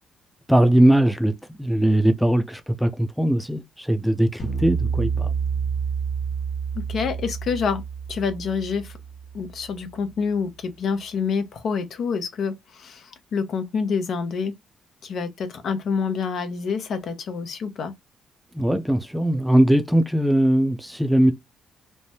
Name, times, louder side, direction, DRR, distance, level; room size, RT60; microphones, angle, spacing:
voice 1, 0.5-1.3 1.6-5.3 18.5-21.3, right 1 dB, ahead, 0.5 m, -20 dB
sound 1, 4.4-9.7, right 6 dB, 40° left, 1.1 m, -29 dB
voice 2, 6.7-7.8 8.1-8.9 9.3-14.5 15.0-17.9, left 5 dB, 65° left, 0.7 m, -27 dB
3.2 x 2.1 x 2.7 m
cardioid pair, 90°, 0 cm